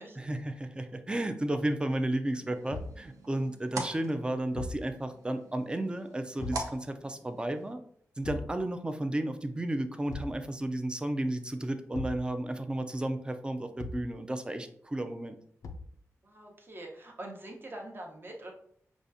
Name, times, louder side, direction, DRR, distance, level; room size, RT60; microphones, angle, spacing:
voice 1, 0.2-7.8 8.2-15.4, right 1 dB, 15° right, 8 dB, 0.4 m, -33 dB
sound 1, 2.3-7.7, right 2 dB, 80° right, 0.6 m, -43 dB
Thump thud, 2.7-3.0 4.5-4.9 6.4-6.7 8.2-8.6 10.1-10.4 11.9-12.3 13.8-14.1 15.6-16.0, left 3 dB, 90° left, 0.4 m, -39 dB
voice 2, 16.2-18.5, right 1 dB, 40° right, 0 dB, 0.8 m, -44 dB
4.9 x 2.4 x 2.6 m, 0.64 s
cardioid pair, 65°, 6 cm